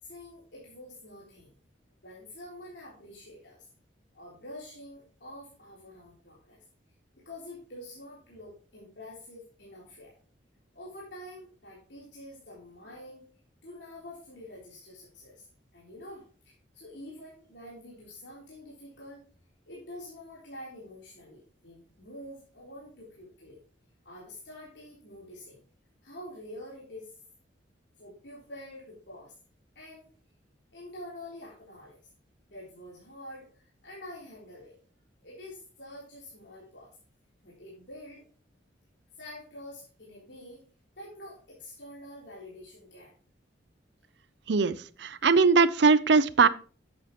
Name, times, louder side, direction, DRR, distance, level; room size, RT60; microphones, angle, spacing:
voice 1, 0.0-1.5 2.0-3.7 4.1-6.6 7.2-10.2 10.7-13.3 13.6-15.4 15.7-19.2 19.7-23.6 24.0-25.6 26.0-27.2 28.0-29.3 29.8-30.1 30.7-32.0 32.5-34.8 35.2-36.9 37.4-38.2 39.2-40.6 41.0-43.1, left 1 dB, 70° left, -5 dB, 3.5 m, -47 dB
voice 2, 44.5-46.5, right 4 dB, 70° right, 16 dB, 0.6 m, -21 dB
11.0 x 8.2 x 3.0 m, 0.40 s
head